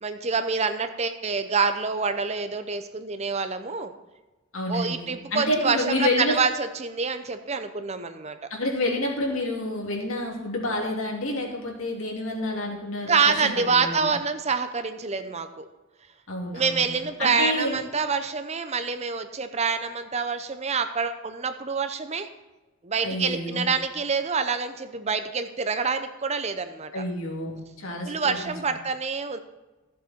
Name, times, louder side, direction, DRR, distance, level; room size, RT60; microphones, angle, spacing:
voice 1, 0.0-3.9 4.7-8.4 13.1-15.6 16.5-22.3 22.8-27.0 28.1-29.4, right 5 dB, 30° right, 9 dB, 0.7 m, -26 dB
voice 2, 4.5-6.4 8.5-14.1 16.3-17.8 23.0-23.7 26.9-28.5, left 1 dB, 75° left, -1 dB, 2.8 m, -29 dB
14.5 x 7.4 x 4.3 m, 1.1 s
head